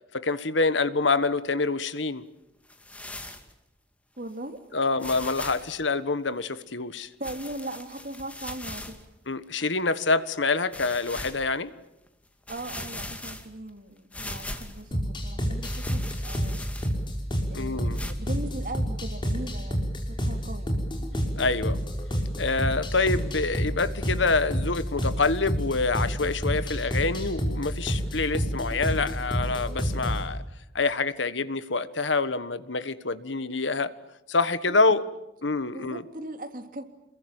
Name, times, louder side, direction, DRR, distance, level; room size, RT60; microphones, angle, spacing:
voice 1, 0.1-2.2 4.7-7.1 9.3-11.7 17.5-18.1 21.4-21.8 22.4-30.4 30.7-33.9 34.3-35.1 35.4-36.0, left 3 dB, 80° left, 14 dB, 1.4 m, -26 dB
sound 1, 2.7-3.5 4.3-4.4 5.0-5.7 7.2-9.0 9.6-9.7 10.7-11.4 12.1-12.2 12.5-13.7 14.1-14.9 15.6-17.1 17.9-18.1, left 1 dB, 5° left, 2.3 m, -39 dB
voice 2, 4.2-4.6 5.6-5.7 7.2-9.1 12.5-16.7 17.5-20.7 34.7-35.0 35.7-36.8, right 1 dB, 45° right, 6 dB, 3.2 m, -39 dB
sound 2, 14.9-30.3, equal, 25° left, 4.9 m, -29 dB
28.0 x 22.0 x 9.0 m, 0.90 s
head